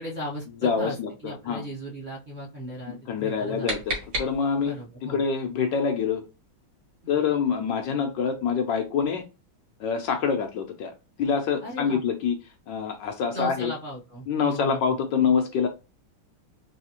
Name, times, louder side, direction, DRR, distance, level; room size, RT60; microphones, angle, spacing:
voice 1, 0.0-0.9 1.2-3.7 4.6-5.2 11.6-12.0 13.3-14.8, equal, 30° right, -5 dB, 1.0 m, -36 dB
voice 2, 0.6-1.6 2.9-6.2 7.1-9.2 9.8-10.9 11.2-12.4 12.7-13.7 14.3-15.7, left 6 dB, 75° left, 4 dB, 1.2 m, -26 dB
sound 1, 3.2-4.8, right 1 dB, 50° right, 1.8 m, -34 dB
4.1 x 2.8 x 2.8 m, 0.29 s
omnidirectional pair, 2.2 m